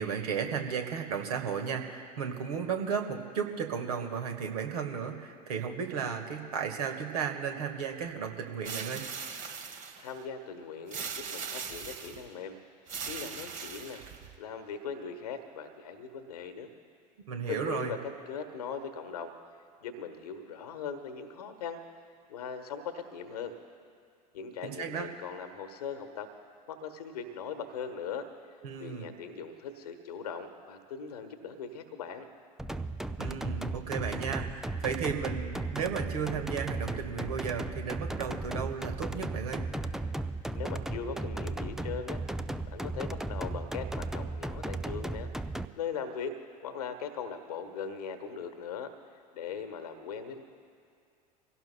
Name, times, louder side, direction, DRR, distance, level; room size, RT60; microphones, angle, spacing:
voice 1, 0.0-9.0 17.3-17.9 24.6-25.1 28.6-29.1 33.2-39.6, right 7 dB, 65° right, 4 dB, 1.7 m, -34 dB
sound 1, 8.6-10.1 10.9-12.2 12.9-14.3, right 6 dB, 35° right, 1.4 m, -39 dB
voice 2, 10.0-12.5 13.1-14.0 14.4-16.7 17.5-18.0 18.3-19.3 19.8-21.9 22.3-23.5 24.3-26.3 26.7-28.3 28.8-32.3 40.5-42.2 42.7-45.3 45.8-46.4 46.6-48.9 49.3-50.4, left 6 dB, 70° left, 8 dB, 1.3 m, -39 dB
sound 2, 32.6-45.7, right 2 dB, ahead, 0.4 m, -36 dB
25.5 x 17.0 x 2.3 m, 2.3 s
figure-of-eight pair, 75°, 21 cm